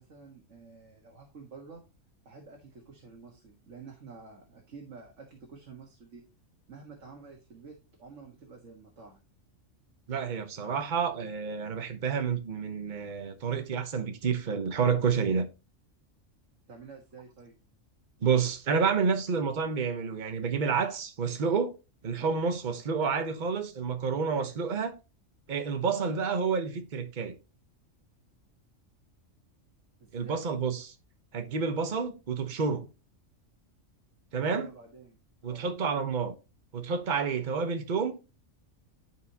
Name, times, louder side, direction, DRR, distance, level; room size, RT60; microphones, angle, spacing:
voice 1, 0.0-1.8 2.2-6.2 6.7-9.2 16.7-17.6 30.0-30.4 34.5-35.7, right 4 dB, 65° right, 1.8 m, -50 dB
voice 2, 10.1-15.5 18.2-21.7 22.0-24.9 25.5-27.3 30.1-30.9 31.3-32.9 34.3-34.7 35.4-36.3 36.7-38.2, right 5 dB, 40° right, 1.0 m, -29 dB
12.0 x 4.7 x 2.8 m
omnidirectional pair, 1.3 m